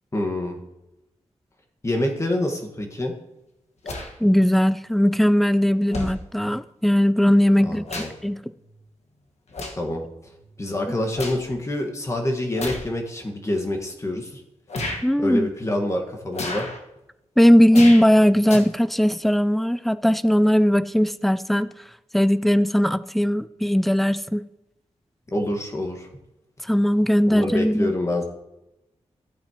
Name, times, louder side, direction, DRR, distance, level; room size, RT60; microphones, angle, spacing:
voice 1, 0.1-0.6 1.8-3.1 7.6-8.1 9.7-10.0 10.6-14.4 15.2-16.7 25.3-26.1 27.3-28.2, left 1 dB, 25° left, 1.6 m, -26 dB
sound 1, 3.8-4.1 5.2-5.3 5.9-6.2 7.4-8.3 8.6-8.9 9.5-9.9 10.4-11.4 12.5-12.9 13.6-13.7 14.7-15.0 16.3-16.8 17.7-18.1 18.4-18.6, left 2 dB, 70° left, 1.6 m, -32 dB
voice 2, 4.2-8.4 15.0-15.5 17.4-21.7 22.1-24.5 26.6-28.0, equal, ahead, 0.3 m, -19 dB
14.5 x 8.6 x 3.0 m
wide cardioid pair, 110°, 11 cm